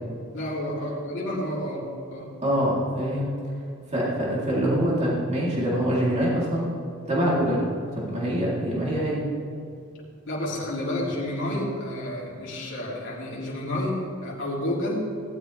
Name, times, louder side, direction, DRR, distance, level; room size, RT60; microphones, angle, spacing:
voice 1, 0.3-1.8 2.1-2.3 10.3-15.1, left 1 dB, 55° left, -6 dB, 3.6 m, -30 dB
voice 2, 2.4-3.3 3.9-6.7 7.1-7.6 7.9-9.2, equal, 30° right, -6 dB, 3.7 m, -24 dB
18.5 x 12.0 x 3.5 m, 2.5 s
head